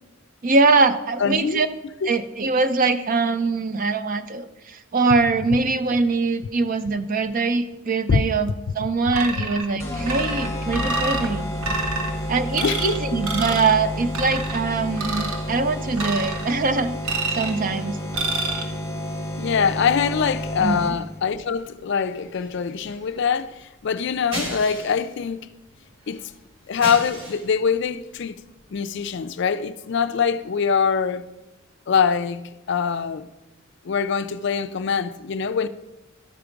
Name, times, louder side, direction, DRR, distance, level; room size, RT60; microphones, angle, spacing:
voice 1, 0.4-1.7 2.1-11.4 12.3-18.0 20.6-20.8, right 3 dB, 40° right, 0.5 m, -22 dB
voice 2, 1.2-1.6 2.0-2.1 8.1-8.2 12.6-13.2 19.4-25.5 26.1-26.2 26.7-28.4 28.7-31.2 31.9-32.4 32.7-33.3 33.8-35.7, left 6 dB, 55° left, 0.4 m, -23 dB
sound 1, 9.1-9.7 10.1-11.3 11.6-12.1 12.5-13.0 13.2-13.8 14.1-14.6 15.0-15.4 16.0-16.5 17.0-17.6 18.1-18.6, right 3 dB, 85° right, 1.2 m, -28 dB
sound 2, 9.6-29.3, equal, 60° right, 3.2 m, -43 dB
sound 3, 9.8-21.2, left 1 dB, 15° left, 1.1 m, -30 dB
12.5 x 4.6 x 5.1 m
head